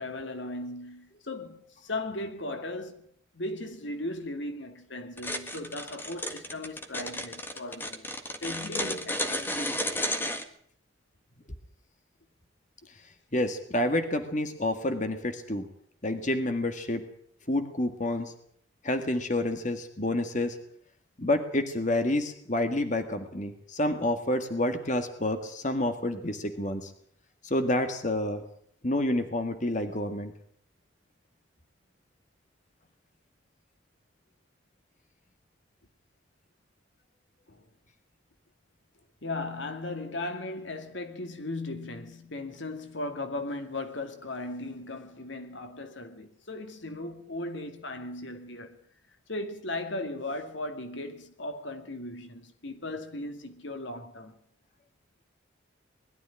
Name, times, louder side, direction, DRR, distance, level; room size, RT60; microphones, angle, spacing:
voice 1, 0.0-3.0 3.3-8.1 8.4-10.4 37.5-37.7 39.2-48.8 49.3-54.3, left 2 dB, 65° left, 2.3 m, -37 dB
sound 1, 5.2-10.4, left 1 dB, 10° left, 1.7 m, -32 dB
voice 2, 13.3-15.7 16.0-17.1 17.5-18.3 18.8-20.6 21.2-26.9 27.4-28.4 28.8-30.3, left 1 dB, 35° left, 1.8 m, -28 dB
21.0 x 13.0 x 10.0 m
head